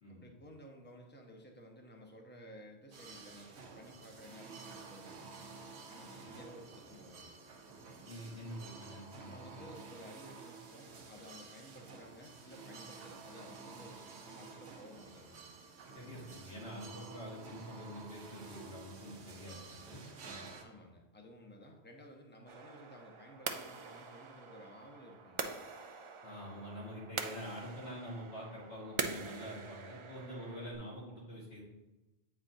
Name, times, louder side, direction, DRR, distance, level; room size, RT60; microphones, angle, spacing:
voice 1, 0.1-5.3 5.9-7.3 9.2-15.5 20.6-25.7, equal, 10° left, 1 dB, 0.6 m, -55 dB
sound 1, 2.9-20.6, right 4 dB, 85° right, 1.0 m, -51 dB
voice 2, 8.0-9.6 15.9-20.4 26.2-31.6, equal, 70° left, -5 dB, 2.1 m, -46 dB
sound 2, 22.5-30.8, right 5 dB, 55° right, 0.3 m, -44 dB
8.5 x 4.4 x 2.7 m, 1.0 s
omnidirectional pair, 1.1 m